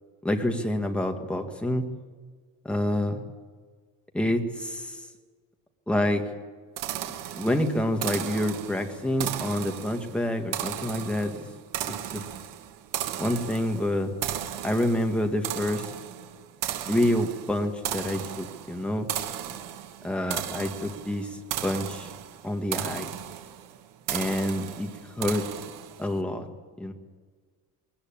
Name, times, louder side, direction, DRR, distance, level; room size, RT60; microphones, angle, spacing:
voice 1, 0.2-1.8 2.7-3.2 4.1-5.0 5.9-6.2 7.3-11.5 11.9-12.2 13.2-14.1 14.6-15.9 16.9-19.1 20.0-21.4 21.6-22.1 22.4-23.1 24.1-24.9 25.2-25.4 26.0-26.5 26.8-26.9, left 1 dB, 5° left, 3 dB, 1.8 m, -27 dB
sound 1, 6.8-26.1, right 11 dB, 75° right, 1.8 m, -36 dB
20.5 x 18.0 x 8.8 m, 1.5 s
cardioid pair, 165°, 33 cm